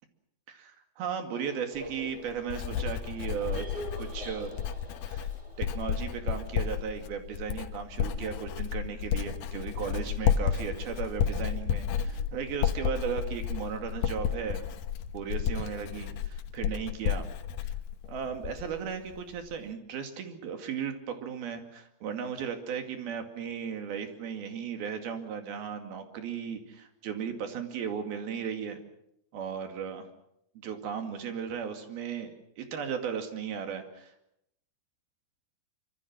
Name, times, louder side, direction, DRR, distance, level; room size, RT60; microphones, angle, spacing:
voice 1, 0.5-3.7 4.0-4.6 5.1-5.3 5.6-14.6 15.1-17.3 18.1-28.8 29.3-30.1 30.6-34.1, right 7 dB, 80° right, 6 dB, 4.2 m, -36 dB
sound 1, 1.3-7.0, equal, 10° right, 3.5 m, -46 dB
Writing, 1.8-18.8 19.1-19.6, left 8 dB, 75° left, 2.9 m, -32 dB
25.5 x 25.0 x 6.2 m, 0.78 s
omnidirectional pair, 4.2 m